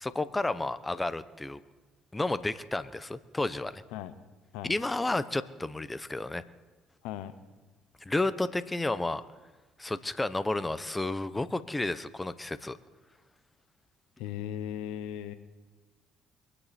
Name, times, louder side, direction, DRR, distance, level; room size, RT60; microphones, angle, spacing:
voice 1, 0.0-1.6 2.1-3.8 4.7-6.4 8.1-9.2 9.8-12.8, left 2 dB, 15° left, 14 dB, 0.8 m, -31 dB
voice 2, 14.2-15.3, left 11 dB, 80° left, 13 dB, 0.8 m, -37 dB
23.0 x 10.0 x 4.3 m, 1.3 s
hypercardioid pair, 60°, 0 cm